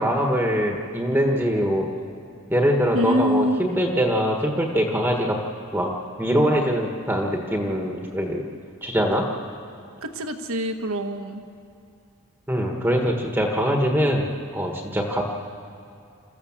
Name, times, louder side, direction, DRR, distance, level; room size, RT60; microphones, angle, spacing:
voice 1, 0.0-1.9 2.5-5.4 5.7-5.9 6.2-8.5 8.8-9.2 12.5-15.2, equal, 10° right, 1 dB, 1.3 m, -23 dB
voice 2, 2.9-3.6 10.0-11.4, equal, 70° right, 6 dB, 1.4 m, -25 dB
27.0 x 14.0 x 7.3 m, 2.4 s
head